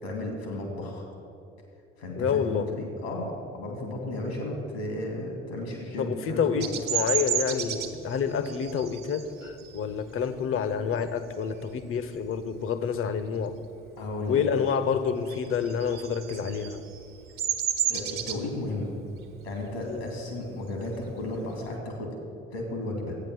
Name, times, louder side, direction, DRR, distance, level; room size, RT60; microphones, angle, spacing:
voice 1, 0.0-1.1 2.0-6.7 14.0-14.5 17.9-18.9 19.4-22.2 22.5-23.2, left 1 dB, 80° left, 1 dB, 2.5 m, -34 dB
voice 2, 2.1-2.7 6.0-13.6 14.3-16.8 19.8-20.1, left 6 dB, 45° left, 12 dB, 0.9 m, -28 dB
Bird vocalization bird call bird song, 6.6-11.8 12.2-12.6 12.9-14.1 14.4-21.7, right 10 dB, 70° right, 1.2 m, -33 dB
12.0 x 9.2 x 6.3 m, 2.7 s
figure-of-eight pair, 50°, 31 cm